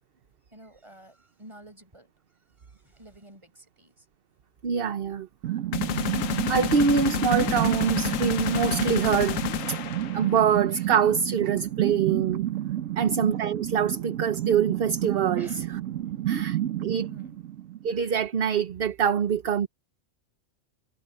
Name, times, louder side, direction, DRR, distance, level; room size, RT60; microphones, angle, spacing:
voice 1, 0.5-2.1 2.6-4.1 12.9-13.2 15.4-15.7 16.1-16.2 17.1-17.4, right 1 dB, 25° right, 6.0 m, -50 dB
voice 2, 4.6-5.3 6.5-9.4 9.7-9.8 10.1-12.4 13.0-15.5 16.3-17.1 17.8-19.7, right 7 dB, 50° right, 1.0 m, -25 dB
sound 1, 5.4-18.1, right 12 dB, 80° right, 1.3 m, -30 dB
sound 2, 5.7-10.5, left 9 dB, 80° left, 1.2 m, -29 dB
omnidirectional pair, 1.3 m